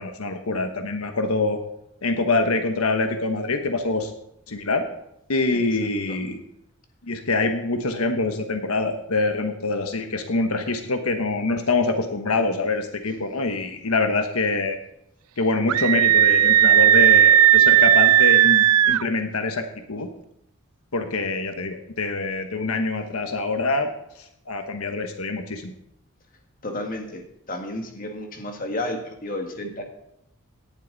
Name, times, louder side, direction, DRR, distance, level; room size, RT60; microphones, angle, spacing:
voice 1, 0.0-1.6 2.0-4.1 4.5-4.8 5.3-6.4 7.1-14.8 15.4-20.1 20.9-23.9 24.5-25.7, left 3 dB, 80° left, 6 dB, 1.2 m, -25 dB
Screaming, 15.7-19.0, right 11 dB, 85° right, 0.4 m, -15 dB
voice 2, 26.6-29.8, left 1 dB, 40° left, 3 dB, 2.0 m, -32 dB
17.5 x 11.5 x 4.1 m, 0.80 s
head